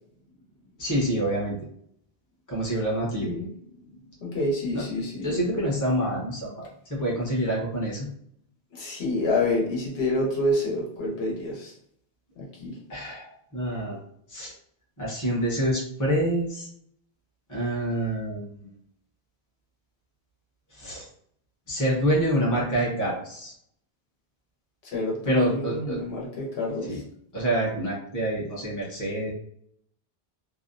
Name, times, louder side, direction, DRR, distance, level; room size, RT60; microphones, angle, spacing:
voice 1, 0.8-1.6 2.5-3.3 4.7-4.8 5.2-8.1 12.9-14.0 14.3-14.5 15.0-16.7 17.5-18.5 20.7-21.1 21.7-23.5 25.2-26.0 26.8-27.0 27.3-29.3, right 1 dB, 20° left, -4 dB, 0.7 m, -27 dB
voice 2, 3.2-3.5 4.2-5.4 8.7-11.7 12.4-12.8 24.9-27.0, left 2 dB, 80° left, -3 dB, 1.1 m, -28 dB
2.7 x 2.0 x 2.5 m, 0.68 s
omnidirectional pair, 1.1 m